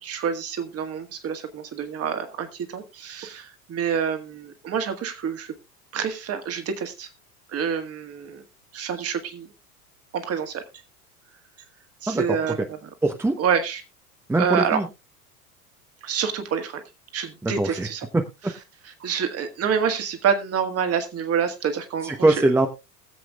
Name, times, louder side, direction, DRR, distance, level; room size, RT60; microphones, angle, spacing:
voice 1, 0.0-5.5 5.9-7.1 7.5-8.4 8.7-9.5 10.1-10.6 12.0-12.7 13.4-13.8 14.4-14.8 16.0-16.8 17.1-18.1 19.0-22.4, right 7 dB, 30° right, 8 dB, 1.8 m, -27 dB
voice 2, 13.0-13.4 14.3-14.9 17.4-17.9 18.1-18.2 22.0-22.7, right 2 dB, 5° right, 5 dB, 0.8 m, -21 dB
21.0 x 7.7 x 2.3 m, 0.25 s
figure-of-eight pair, 80°, 46 cm